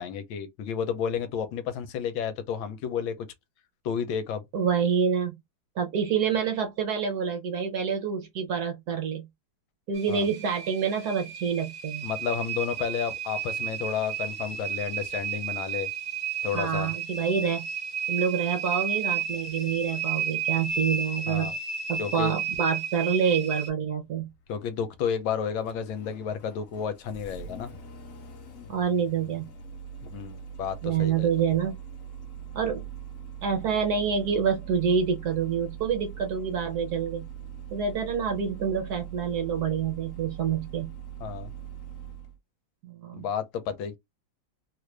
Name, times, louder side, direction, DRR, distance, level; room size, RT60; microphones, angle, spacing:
voice 1, 0.0-3.3 3.8-4.4 10.1-10.2 12.0-15.9 16.4-16.9 21.3-21.5 22.0-22.4 24.5-27.7 30.1-31.5 41.2-41.5 43.1-44.0, left 7 dB, 80° left, 1.4 m, -31 dB
voice 2, 4.5-5.3 5.8-9.3 9.9-12.1 16.5-17.7 18.1-21.5 21.9-24.3 28.7-29.5 30.8-31.8 32.5-32.8 33.4-37.3 37.7-40.9 42.8-43.3, right 7 dB, 65° right, 1.1 m, -27 dB
sound 1, 9.9-23.7, right 7 dB, 35° right, 1.4 m, -33 dB
Engine starting, 24.0-42.4, right 8 dB, 55° left, 1.0 m, -42 dB
3.2 x 2.5 x 3.2 m
omnidirectional pair, 2.2 m